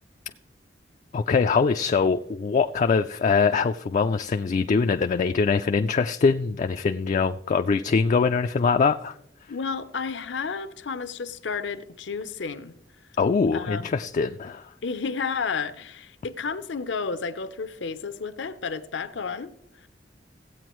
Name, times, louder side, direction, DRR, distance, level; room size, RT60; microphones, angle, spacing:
voice 1, 1.1-9.1 13.2-14.7, left 5 dB, 40° left, 0.3 m, -23 dB
voice 2, 9.5-12.8 13.5-13.9 14.8-19.5 19.8-19.9, left 5 dB, 75° left, 0.6 m, -31 dB
16.0 x 8.4 x 3.1 m
head